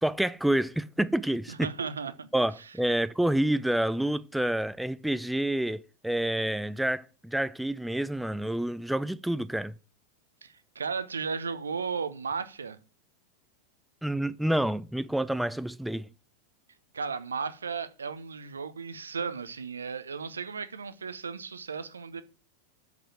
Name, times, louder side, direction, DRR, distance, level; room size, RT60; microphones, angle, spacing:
voice 1, 0.0-1.7 2.3-9.7 14.0-16.1, right 1 dB, ahead, 0.4 m, -28 dB
voice 2, 1.5-2.3 2.6-2.7 10.4-12.8 16.9-22.2, right 5 dB, 70° right, 0.8 m, -35 dB
6.7 x 5.9 x 7.1 m
figure-of-eight pair, 90°, 0 cm